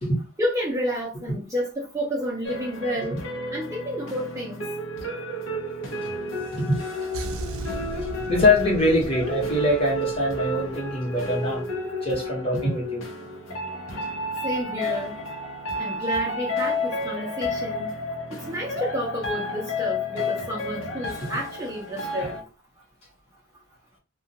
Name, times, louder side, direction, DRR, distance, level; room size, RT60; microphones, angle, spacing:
voice 1, 0.4-3.2 3.5-4.7 14.4-15.2 15.8-18.0 18.3-22.4, equal, 15° right, 0.5 m, -30 dB
sound 1, 2.4-22.4, left 1 dB, 75° left, 0.7 m, -31 dB
sound 2, 7.1-11.7 12.0-12.2, right 2 dB, 80° right, 0.4 m, -37 dB
voice 2, 8.3-11.7 12.0-13.0, left 2 dB, 25° left, 1.0 m, -23 dB
2.4 x 2.2 x 2.7 m
head